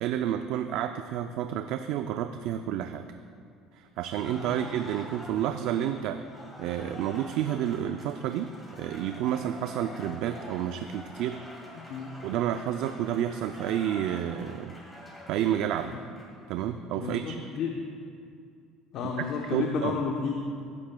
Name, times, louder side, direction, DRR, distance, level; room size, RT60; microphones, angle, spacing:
voice 1, 0.0-3.1 3.7-6.2 6.6-11.4 12.2-14.7 15.3-15.9 16.5-17.5 19.4-20.0, right 10 dB, 70° right, 8 dB, 0.3 m, -30 dB
Cheering / Applause, 4.0-16.6, left 1 dB, 15° left, 2.5 m, -46 dB
voice 2, 4.2-4.6 11.7-12.2 15.9-16.0 16.9-17.8 18.9-20.3, left 5 dB, 60° left, 1 dB, 0.8 m, -32 dB
17.0 x 9.8 x 2.2 m, 2.3 s
cardioid pair, 120°, 0 cm